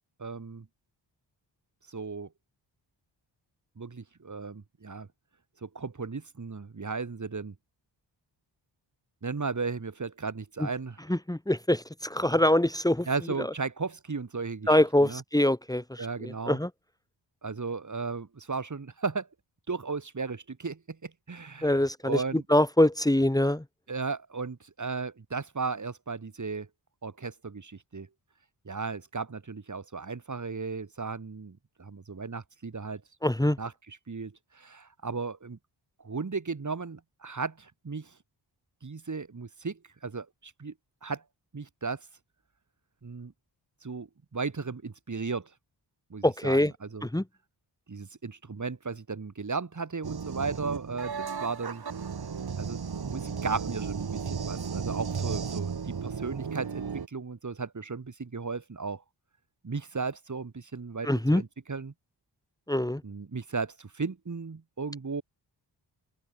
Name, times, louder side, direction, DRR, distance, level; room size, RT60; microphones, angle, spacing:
voice 1, 0.2-0.7 1.9-2.3 3.8-5.1 5.6-7.5 9.2-11.0 13.1-15.2 16.0-16.6 17.4-19.3 19.7-22.4 23.9-26.7 27.0-28.1 28.6-33.0 33.6-35.6 36.0-38.2 38.8-40.7 41.0-41.2 41.5-42.1 43.0-43.3 43.8-45.5 46.1-47.1 47.9-51.8 52.6-59.0 59.6-61.9 63.0-65.2, right 4 dB, 40° right, 7.8 m, -35 dB
voice 2, 11.1-13.1 14.7-16.7 21.6-22.2 22.5-23.6 33.2-33.6 46.2-46.7 47.0-47.2 61.0-61.4 62.7-63.0, left 1 dB, 10° left, 3.0 m, -24 dB
sound 1, 50.0-57.1, right 6 dB, 55° right, 4.0 m, -34 dB
open air
wide cardioid pair, 140°, 44 cm